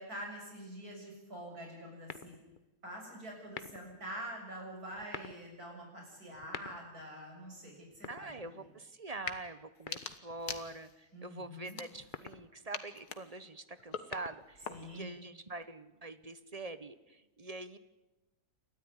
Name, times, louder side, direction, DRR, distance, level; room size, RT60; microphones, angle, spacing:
voice 1, 0.0-2.3 2.8-8.3 11.1-11.8 14.7-15.1, equal, 75° right, 0 dB, 7.5 m, -46 dB
sound 1, 2.0-2.7 3.4-4.0 4.9-5.4 6.3-7.1 7.9-8.8 9.9-10.5 11.9-12.5 13.8-14.7, left 5 dB, 40° left, 1.0 m, -47 dB
voice 2, 8.1-17.8, right 2 dB, 30° right, 13 dB, 0.8 m, -45 dB
sound 2, 9.1-9.4 9.8-11.1 11.6-12.3 12.7-15.1, left 7 dB, 90° left, 1.9 m, -44 dB
29.0 x 13.0 x 9.8 m, 1.1 s
omnidirectional pair, 1.6 m